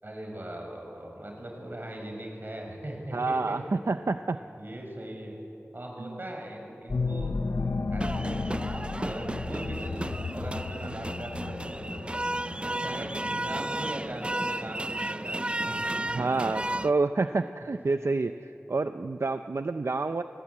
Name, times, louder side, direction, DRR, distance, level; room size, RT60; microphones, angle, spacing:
voice 1, 0.0-3.8 4.6-5.4 5.7-7.3 7.9-12.0 12.6-15.8, right 1 dB, 45° right, 1 dB, 6.1 m, -40 dB
voice 2, 3.1-4.4 6.0-6.2 10.8-10.9 12.9-13.1 16.1-20.2, right 3 dB, 75° right, 9 dB, 0.6 m, -28 dB
sound 1, 6.9-13.9, left 3 dB, 80° left, 0.5 m, -34 dB
sound 2, 8.0-16.9, right 1 dB, 25° right, 0.5 m, -33 dB
25.5 x 18.5 x 8.7 m, 2.8 s
wide cardioid pair, 55°, 5 cm